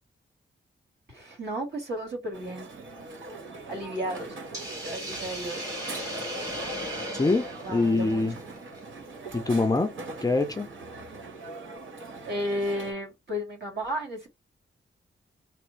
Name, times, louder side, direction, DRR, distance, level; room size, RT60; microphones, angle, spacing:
voice 1, 1.1-2.7 3.7-4.4 4.8-5.7 7.6-8.5 12.3-14.3, equal, 55° right, 2.3 m, -33 dB
Crowd, 2.3-12.9, right 3 dB, 75° right, 1.6 m, -42 dB
Hiss, 4.5-8.8, equal, 15° right, 1.6 m, -37 dB
voice 2, 7.1-8.4 9.3-9.9 10.2-10.7, left 3 dB, 20° left, 0.4 m, -24 dB
3.4 x 2.3 x 3.2 m
wide cardioid pair, 175°, 20 cm